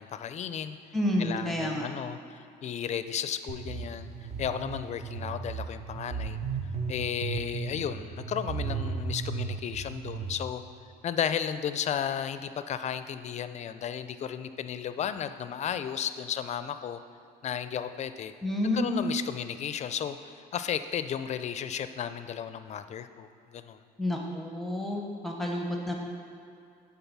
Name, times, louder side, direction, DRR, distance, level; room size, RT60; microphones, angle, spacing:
voice 1, 0.0-0.8 1.2-4.1 4.4-6.4 6.9-10.6 11.0-17.0 17.4-18.3 18.7-23.8, left 8 dB, 40° left, 11 dB, 0.4 m, -34 dB
voice 2, 0.9-1.8 18.4-19.0 24.0-25.9, left 1 dB, ahead, 0 dB, 0.8 m, -29 dB
sound 1, 3.5-10.3, right 5 dB, 40° right, 0.7 m, -35 dB
9.4 x 3.8 x 6.0 m, 2.5 s
cardioid pair, 110°, 17 cm